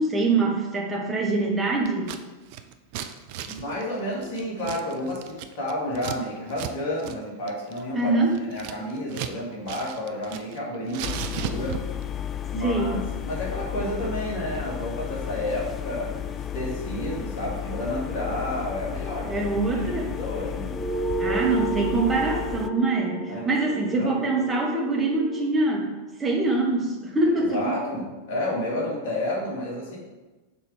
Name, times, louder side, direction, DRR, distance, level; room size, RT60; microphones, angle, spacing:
voice 1, 0.0-2.1 7.9-8.3 12.6-13.1 19.3-20.1 21.2-25.9 26.2-27.8, right 2 dB, 15° right, -1 dB, 1.2 m, -24 dB
Scissors, 1.8-2.2 2.5-6.2 6.5-6.7 7.0-7.2 7.5-9.4 9.6-10.6 10.9-12.0, right 10 dB, 45° right, 0.4 m, -36 dB
voice 2, 3.4-8.2 8.5-11.8 12.5-13.0 13.3-16.1 16.5-19.4 19.7-20.8 21.2-21.4 23.3-24.2 27.5-30.0, left 1 dB, 50° left, -4 dB, 2.2 m, -31 dB
sound 1, 11.0-22.7, left 9 dB, 25° left, 0.3 m, -33 dB
sound 2, 20.7-25.5, right 2 dB, ahead, 0.9 m, -32 dB
5.9 x 4.0 x 5.0 m, 1.2 s
figure-of-eight pair, 90°, 0 cm